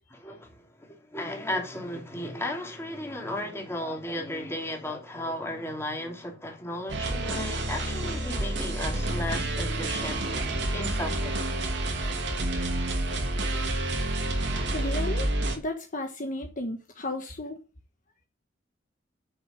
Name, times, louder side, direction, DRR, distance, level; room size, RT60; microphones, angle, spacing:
voice 1, 0.1-10.2 10.7-11.7, left 1 dB, 15° left, 2.8 m, -35 dB
sound 1, 6.9-15.6, right 2 dB, 70° right, 2.3 m, -29 dB
voice 2, 14.7-15.3 15.6-17.6, left 1 dB, 45° left, 1.3 m, -33 dB
9.0 x 6.5 x 5.2 m
head